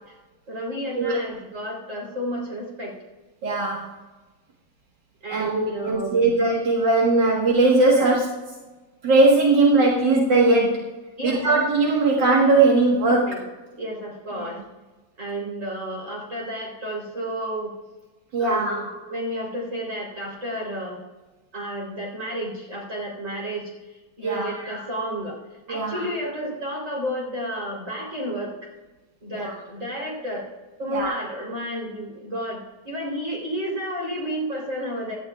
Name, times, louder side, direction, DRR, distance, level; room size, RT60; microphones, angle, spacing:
voice 1, 0.5-3.0 5.2-6.3 7.9-8.2 11.2-11.6 13.1-13.4 13.8-14.6 15.2-17.7 18.4-21.0 21.5-23.7 24.2-25.4 25.7-28.5 29.2-30.5 30.8-35.2, equal, 45° right, -2 dB, 4.0 m, -31 dB
voice 2, 3.4-3.9 5.3-8.3 9.0-10.9 11.2-13.3 14.4-14.5 18.3-18.8 24.2-24.5 25.7-26.1 29.3-29.5 30.9-31.2, right 2 dB, 80° right, -3 dB, 2.2 m, -19 dB
17.0 x 12.0 x 2.4 m, 1.2 s
omnidirectional pair, 1.9 m